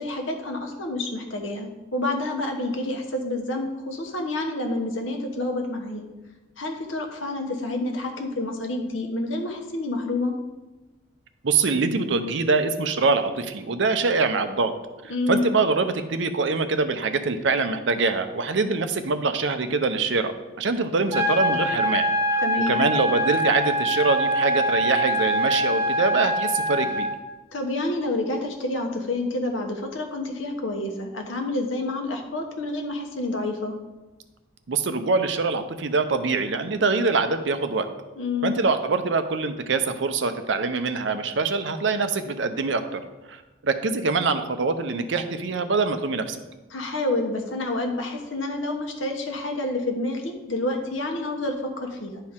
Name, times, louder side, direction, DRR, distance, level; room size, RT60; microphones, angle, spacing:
voice 1, 0.0-6.1 6.6-10.3 15.1-15.5 22.4-22.8 27.5-33.7 38.2-38.5 46.7-52.2, left 2 dB, 85° left, 3 dB, 1.1 m, -28 dB
voice 2, 11.4-14.7 15.0-20.3 20.6-27.1 34.7-37.9 38.4-43.0 43.3-46.4, right 4 dB, 70° right, 9 dB, 0.6 m, -24 dB
sound 1, 21.1-27.1, equal, 15° right, 2.7 m, -24 dB
10.5 x 4.6 x 3.6 m, 1.1 s
head